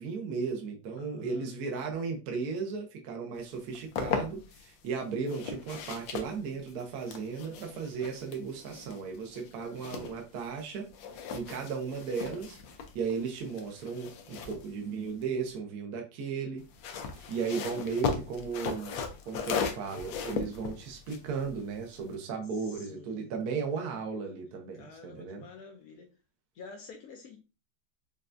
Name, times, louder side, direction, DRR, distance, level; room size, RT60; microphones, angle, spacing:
voice 1, 0.0-10.9 11.1-12.6 12.9-16.6 17.2-25.4, right 5 dB, 65° right, 1.2 m, -35 dB
voice 2, 1.0-1.6 9.6-10.1 22.5-23.3 24.7-26.1 26.5-27.4, left 5 dB, 70° left, 0.9 m, -49 dB
sound 1, 3.5-4.7 5.2-10.7 10.9-15.6 16.6-22.1, left 5 dB, 85° left, 1.4 m, -37 dB
5.3 x 2.3 x 2.5 m
omnidirectional pair, 2.0 m